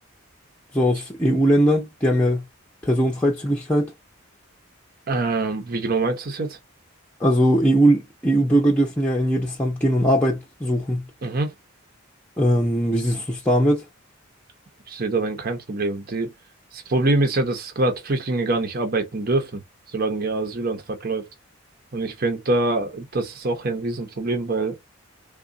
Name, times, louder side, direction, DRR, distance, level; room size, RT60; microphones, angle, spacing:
voice 1, 0.7-2.4 2.8-3.9 7.2-11.0 12.4-13.8, equal, 5° left, 0.7 m, -20 dB
voice 2, 5.1-6.6 11.2-11.5 14.9-16.3 16.7-19.6 19.9-21.2 21.9-24.8, right 2 dB, 45° right, 0.8 m, -24 dB
3.6 x 2.4 x 3.9 m
head